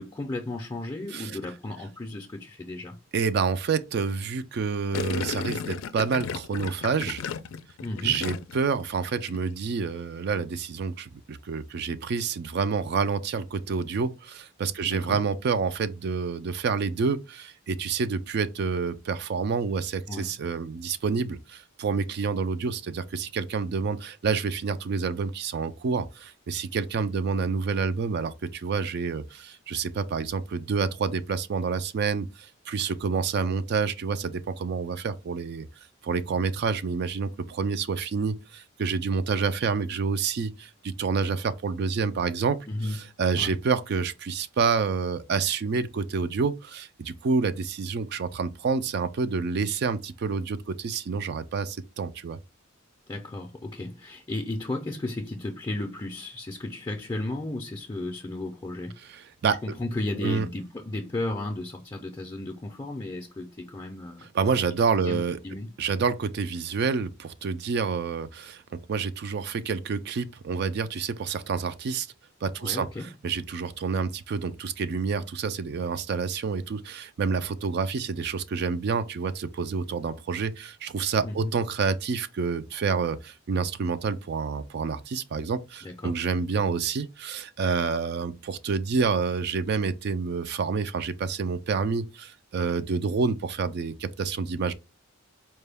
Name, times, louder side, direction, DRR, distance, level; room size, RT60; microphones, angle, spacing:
voice 1, 0.0-3.0 7.8-8.2 14.8-15.2 20.1-20.3 42.7-43.0 43.4-43.6 53.1-59.0 59.6-64.3 65.0-65.7 72.6-73.1 81.2-81.5 85.8-86.2, left 2 dB, 20° left, 0.4 m, -34 dB
voice 2, 3.1-7.2 8.0-35.7 36.0-42.6 43.2-52.4 59.1-59.6 60.2-60.5 64.3-65.4 65.8-72.1 72.4-72.9 73.2-94.7, right 5 dB, 55° right, 0.4 m, -28 dB
Gurgling, 4.9-8.7 9.0-9.4, left 6 dB, 90° left, 0.4 m, -34 dB
4.3 x 2.2 x 3.3 m
head